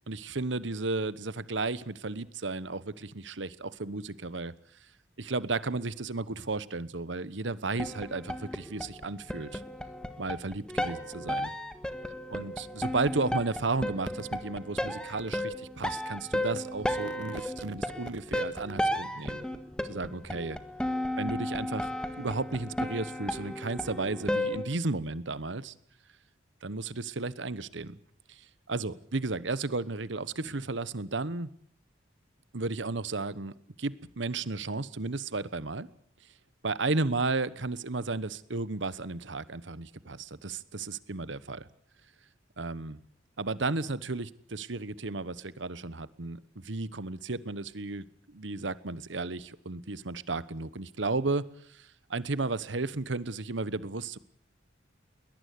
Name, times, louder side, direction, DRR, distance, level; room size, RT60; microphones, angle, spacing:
voice 1, 0.1-4.5 5.2-9.6 10.2-11.5 12.3-19.4 19.9-20.6 21.2-25.7 26.6-28.0 28.3-28.4 28.7-31.5 32.5-35.9 36.6-41.7 42.6-43.0 43.4-51.4 51.7-54.2, right 3 dB, 75° right, 17 dB, 1.2 m, -33 dB
sound 1, 7.8-24.6, left 1 dB, 5° left, 1.6 m, -34 dB
22.0 x 18.5 x 8.5 m, 0.66 s
head